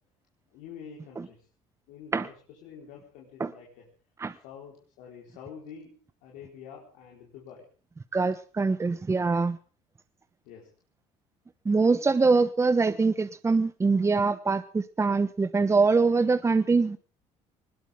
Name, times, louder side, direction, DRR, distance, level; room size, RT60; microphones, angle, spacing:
voice 1, 0.5-1.4 1.9-3.8 4.4-7.7 10.4-10.7, left 7 dB, 90° left, -2 dB, 4.4 m, -47 dB
voice 2, 8.1-9.6 11.6-17.0, right 4 dB, 20° right, 10 dB, 1.1 m, -23 dB
20.5 x 18.5 x 3.7 m, 0.39 s
cardioid pair, 95°, 13 cm